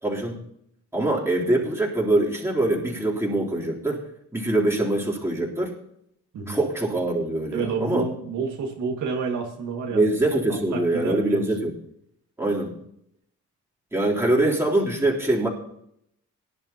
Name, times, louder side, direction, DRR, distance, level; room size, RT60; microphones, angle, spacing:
voice 1, 0.0-0.4 0.9-4.0 4.3-5.7 6.5-8.0 9.9-11.7 12.4-12.7 13.9-15.5, right 2 dB, 10° right, -4 dB, 3.7 m, -23 dB
voice 2, 7.5-10.1 10.7-11.5, right 5 dB, 75° right, 1 dB, 2.1 m, -29 dB
18.5 x 11.0 x 3.0 m, 0.73 s
cardioid pair, 90°, 30 cm